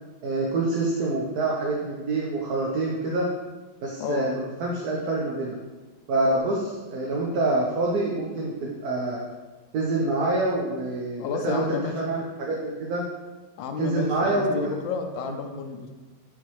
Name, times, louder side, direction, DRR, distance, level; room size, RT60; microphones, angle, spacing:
voice 1, 0.2-3.3 3.8-5.6 6.1-9.2 9.7-11.6 12.0-13.0 13.8-14.7, right 2 dB, 60° right, -2 dB, 1.2 m, -26 dB
voice 2, 11.2-12.0 13.6-15.9, left 6 dB, 80° left, 5 dB, 1.4 m, -31 dB
9.2 x 4.4 x 3.1 m, 1.2 s
omnidirectional pair, 2.1 m